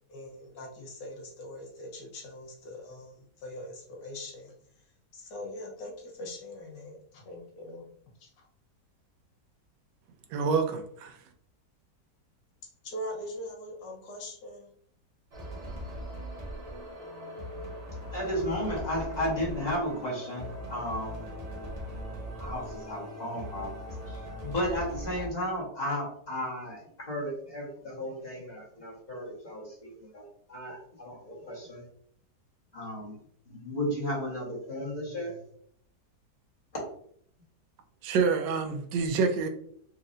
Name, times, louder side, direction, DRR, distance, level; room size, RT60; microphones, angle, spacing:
voice 1, 0.1-4.5 5.1-7.9 8.2-8.3 12.8-14.7, left 1 dB, 85° left, 1.6 m, -42 dB
voice 2, 10.3-11.2 38.0-39.5, right 5 dB, 80° right, 1.2 m, -27 dB
sound 1, 15.3-25.3, equal, 35° right, 0.7 m, -40 dB
voice 3, 18.1-21.3 22.4-31.8 32.7-33.2 33.4-35.4, equal, 25° left, 1.4 m, -34 dB
4.2 x 2.9 x 2.6 m
omnidirectional pair, 1.9 m